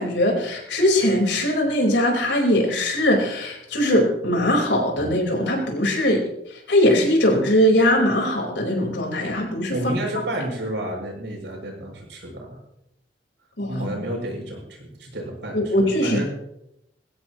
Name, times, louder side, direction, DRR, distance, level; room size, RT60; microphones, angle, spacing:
voice 1, 0.0-6.2 6.7-9.8 13.6-13.8 15.5-16.2, left 1 dB, 85° left, 0 dB, 4.9 m, -20 dB
voice 2, 9.7-12.6 13.7-16.3, right 1 dB, 80° right, -1 dB, 7.3 m, -30 dB
21.0 x 16.0 x 3.2 m, 0.83 s
head